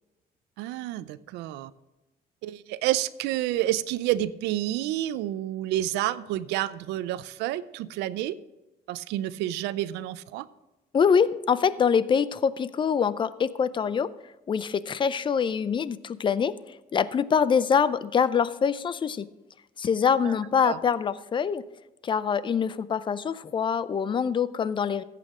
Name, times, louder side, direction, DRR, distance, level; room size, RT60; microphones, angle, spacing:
voice 1, 0.6-1.7 2.4-8.4 8.9-10.5 20.2-20.3 20.6-20.8, right 14 dB, 90° right, 16 dB, 0.5 m, -29 dB
voice 2, 10.9-14.1 14.5-16.5 16.9-19.3 19.8-21.6 22.0-25.0, left 7 dB, 30° left, 17 dB, 0.5 m, -24 dB
14.5 x 8.4 x 3.7 m, 1.0 s
cardioid pair, 110°, 17 cm